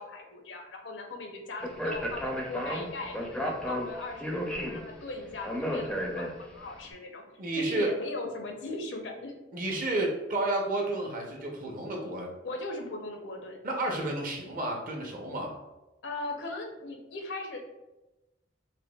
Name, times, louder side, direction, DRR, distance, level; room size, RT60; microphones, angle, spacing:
voice 1, 0.0-7.2 7.5-9.4 12.4-13.6 16.0-17.6, left 2 dB, 80° left, 2 dB, 0.7 m, -39 dB
Speech, 1.6-6.7, equal, 5° left, 0.4 m, -33 dB
voice 2, 7.4-7.9 9.5-12.3 13.6-15.6, right 2 dB, 50° right, 0 dB, 0.7 m, -31 dB
5.1 x 2.2 x 2.3 m, 1.0 s
head